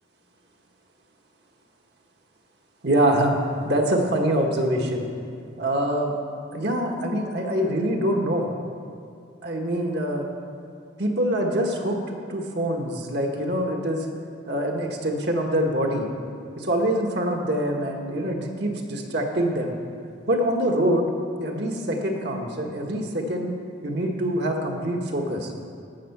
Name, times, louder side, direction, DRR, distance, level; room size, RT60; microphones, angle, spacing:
voice 1, 2.8-3.4 3.6-5.1 5.6-6.1 6.5-8.5 9.4-10.3 11.0-14.1 14.5-16.1 16.6-19.7 20.3-21.1 21.4-23.5 23.8-25.5, right 1 dB, 60° right, 1 dB, 1.3 m, -24 dB
12.0 x 8.0 x 5.9 m, 2.4 s
head